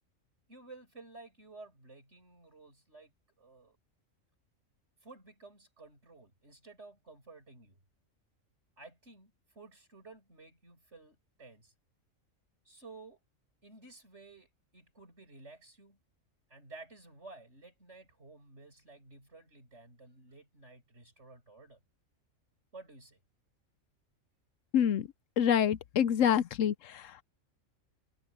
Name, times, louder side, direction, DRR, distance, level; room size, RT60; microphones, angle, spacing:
voice 1, 0.5-3.1 3.4-3.8 5.0-7.8 8.8-11.7 12.6-13.2 13.6-16.0 16.5-21.8 22.7-23.2, right 3 dB, 55° right, 7.7 m, -53 dB
voice 2, 25.4-26.7, left 9 dB, 70° left, 1.0 m, -26 dB
omnidirectional pair, 1.4 m